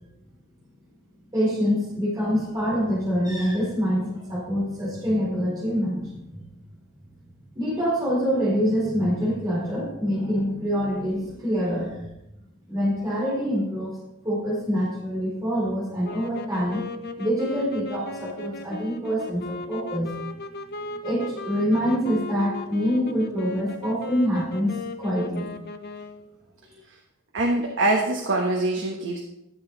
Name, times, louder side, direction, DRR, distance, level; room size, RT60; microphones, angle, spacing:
voice 1, 1.3-6.4 7.6-12.1 12.7-14.0 14.2-16.8 17.2-20.1 21.0-24.7 25.0-25.5, equal, 20° right, -7 dB, 4.1 m, -25 dB
sound 1, 16.0-26.4, left 3 dB, 50° left, 0.8 m, -37 dB
voice 2, 27.3-29.2, right 2 dB, 65° right, 1 dB, 1.2 m, -24 dB
12.0 x 7.9 x 3.9 m, 0.88 s
head